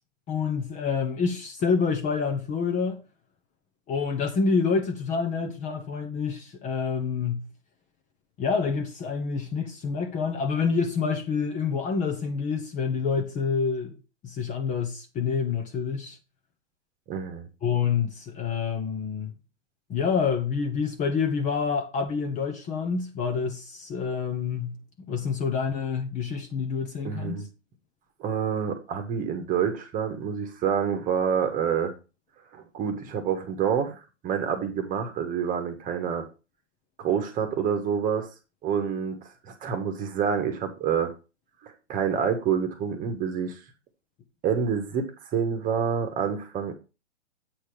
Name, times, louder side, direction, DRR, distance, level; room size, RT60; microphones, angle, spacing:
voice 1, 0.3-3.0 3.9-7.5 8.4-14.0 14.2-16.2 17.6-19.3 19.9-24.8 25.1-27.4, left 5 dB, 20° left, 1.1 m, -27 dB
voice 2, 17.1-17.5 27.0-27.5 28.2-31.9 32.5-36.3 37.0-38.3 38.6-39.2 39.4-41.1 41.6-43.6 44.4-46.7, right 7 dB, 20° right, 1.5 m, -27 dB
8.4 x 4.3 x 5.0 m
hypercardioid pair, 130°, 36 cm